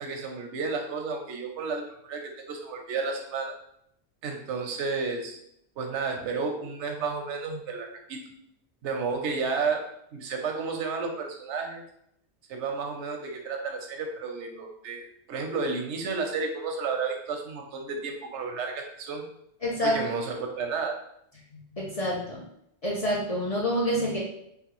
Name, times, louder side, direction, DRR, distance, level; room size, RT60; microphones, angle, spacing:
voice 1, 0.0-3.5 4.2-5.4 5.8-8.2 8.8-9.8 10.1-11.8 12.5-19.2 19.8-21.0, right 4 dB, 90° right, 3 dB, 0.9 m, -32 dB
voice 2, 19.6-20.0 21.5-22.4 22.8-24.2, equal, 45° left, -4 dB, 0.5 m, -27 dB
3.2 x 2.3 x 2.9 m, 0.74 s
omnidirectional pair, 1.1 m